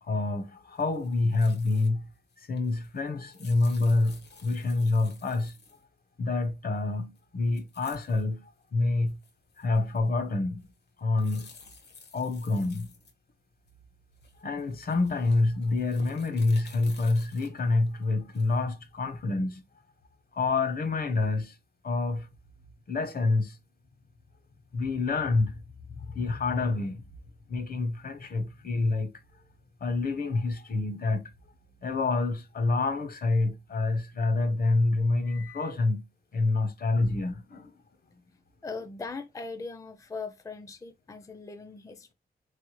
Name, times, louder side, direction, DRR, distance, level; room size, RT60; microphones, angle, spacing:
voice 1, 0.0-2.1 2.4-5.6 6.2-9.2 9.6-10.7 11.0-11.5 12.1-12.9 14.4-19.6 20.3-21.6 21.8-22.3 22.9-23.6 24.7-25.6 26.0-27.0 27.5-29.1 29.8-31.3 31.8-36.0 36.3-37.8, left 3 dB, 60° left, 0.8 m, -27 dB
sound 1, 0.8-1.9 2.2-5.9 7.2-7.3 7.5-8.2 8.6-8.7 9.1-10.2 10.6-13.7 14.2-18.7, left 4 dB, 85° left, 1.2 m, -54 dB
voice 2, 38.6-42.1, left 4 dB, 20° left, 0.4 m, -40 dB
3.9 x 3.3 x 3.0 m
wide cardioid pair, 120°, 17 cm